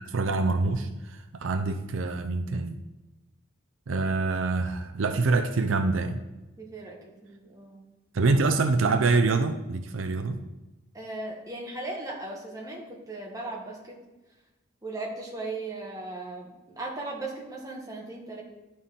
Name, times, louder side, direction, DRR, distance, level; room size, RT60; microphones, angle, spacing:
voice 1, 0.0-2.8 3.9-6.2 8.1-10.4, right 3 dB, 80° right, 7 dB, 0.5 m, -25 dB
voice 2, 6.6-7.0 7.2-7.8 10.9-14.0 14.8-18.4, right 2 dB, 15° right, -3 dB, 1.4 m, -37 dB
11.5 x 4.2 x 3.7 m, 1.1 s
head